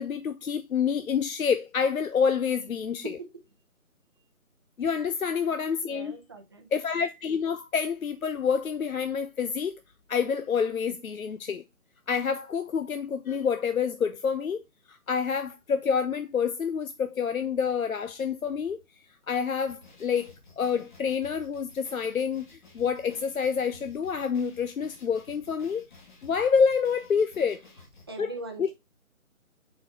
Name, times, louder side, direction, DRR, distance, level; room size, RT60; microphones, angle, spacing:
voice 1, 0.0-3.0 4.8-6.2 6.7-9.8 10.1-11.6 12.1-14.6 14.9-18.8 19.3-22.5 22.7-25.9 26.2-27.6 28.2-28.3, left 6 dB, 70° left, 0.7 m, -27 dB
voice 2, 5.3-6.7 28.0-28.7, right 2 dB, 15° right, 0.8 m, -42 dB
sound 1, 19.7-28.1, left 3 dB, 35° left, 1.9 m, -54 dB
5.9 x 4.5 x 4.7 m
figure-of-eight pair, 155°, 44 cm